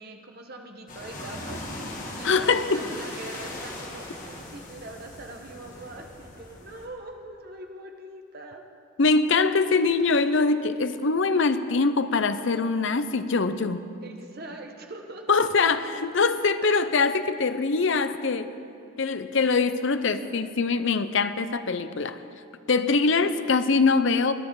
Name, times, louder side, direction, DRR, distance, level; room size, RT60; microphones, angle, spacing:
voice 1, 0.0-8.6 14.0-15.4 16.6-16.8, right 2 dB, 45° right, 3 dB, 1.2 m, -42 dB
sound 1, 0.9-6.9, left 1 dB, 35° left, 2.0 m, -39 dB
voice 2, 2.2-2.8 9.0-13.8 15.3-18.5 19.0-22.2 22.7-24.3, left 4 dB, 60° left, 11 dB, 0.6 m, -23 dB
21.5 x 10.0 x 4.7 m, 2.5 s
head